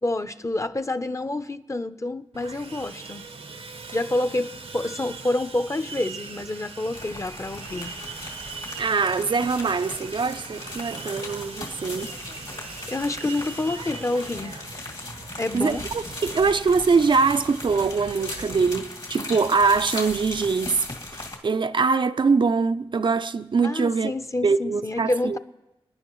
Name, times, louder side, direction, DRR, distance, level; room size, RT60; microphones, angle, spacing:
voice 1, 0.0-3.2 3.9-8.0 12.9-14.5 15.4-15.8 23.6-25.4, left 2 dB, 30° left, 0.7 m, -28 dB
Sawing, 2.3-18.8, right 4 dB, 85° right, 0.8 m, -40 dB
sound 1, 6.9-21.4, left 2 dB, 60° left, 2.5 m, -38 dB
voice 2, 8.8-12.1 15.5-20.9 21.1-24.1 24.4-25.4, right 4 dB, 55° right, 0.4 m, -23 dB
29.5 x 10.5 x 3.1 m
cardioid pair, 55°, 10 cm